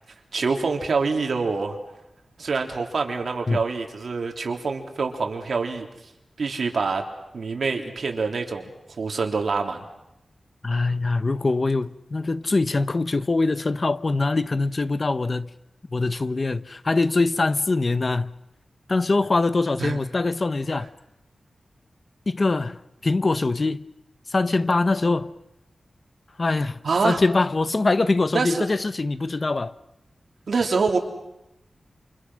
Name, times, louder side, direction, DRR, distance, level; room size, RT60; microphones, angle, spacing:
voice 1, 0.3-1.8 2.4-5.9 6.4-7.0 7.3-8.7 9.0-9.8 19.8-20.0 26.8-27.2 28.3-28.7 30.5-31.0, right 4 dB, 70° right, 3.6 m, -25 dB
voice 2, 10.6-15.5 15.9-18.3 18.9-20.9 22.3-23.8 24.3-25.3 26.4-29.7, left 3 dB, 40° left, 0.9 m, -23 dB
29.0 x 28.5 x 6.4 m
wide cardioid pair, 135°, 0 cm